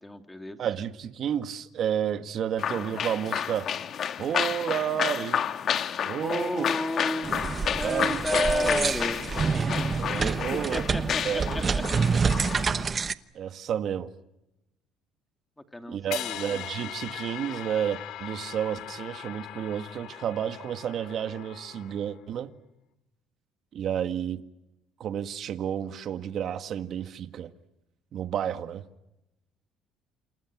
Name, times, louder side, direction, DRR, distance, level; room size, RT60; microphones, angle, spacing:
voice 1, 0.0-0.6 6.2-7.3 7.7-11.8 15.7-16.4, left 1 dB, 10° left, 2.7 m, -32 dB
voice 2, 0.6-3.7 4.2-5.4 6.0-6.7 7.8-8.9 10.0-10.8 11.2-11.6 13.3-14.1 15.9-22.5 23.7-24.4 25.0-27.5 28.1-28.8, right 9 dB, 50° right, 1.8 m, -31 dB
sound 1, 2.6-12.8, left 8 dB, 45° left, 1.3 m, -31 dB
sound 2, 7.2-13.1, right 5 dB, 30° right, 0.9 m, -28 dB
sound 3, 16.1-22.2, left 11 dB, 70° left, 3.2 m, -40 dB
29.5 x 29.0 x 6.2 m
cardioid pair, 125°, 0 cm